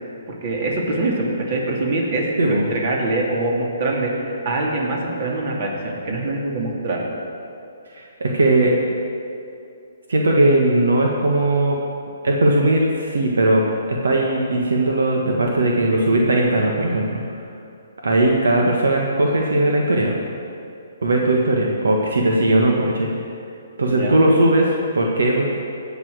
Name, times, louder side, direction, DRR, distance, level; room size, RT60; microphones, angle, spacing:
voice 1, 0.4-2.3 2.7-7.0 23.9-24.2, right 2 dB, 50° right, -1 dB, 2.9 m, -24 dB
voice 2, 2.4-2.7 7.9-8.8 10.1-11.8 12.2-13.6 13.9-17.2 18.0-20.2 21.0-23.1 23.8-25.6, right 1 dB, 85° right, -1 dB, 1.6 m, -18 dB
17.5 x 6.1 x 6.4 m, 2.6 s
hypercardioid pair, 150°, 0 cm